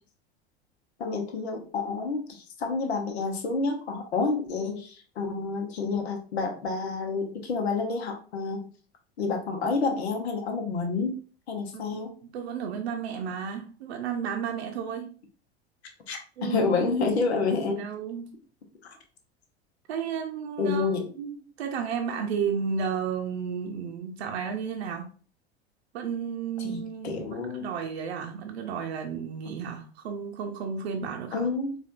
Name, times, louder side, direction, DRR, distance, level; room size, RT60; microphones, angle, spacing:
voice 1, 1.0-8.7 9.2-11.1 11.5-12.1 16.1-17.9 18.8-18.9 20.6-21.1 26.6-27.7 31.3-31.8, left 4 dB, 75° left, 0.8 m, -29 dB
voice 2, 11.7-15.1 16.4-17.1 17.4-18.4 19.9-25.1 25.9-31.5, right 7 dB, 70° right, 0.6 m, -33 dB
4.2 x 2.5 x 2.4 m
figure-of-eight pair, 80°, 33 cm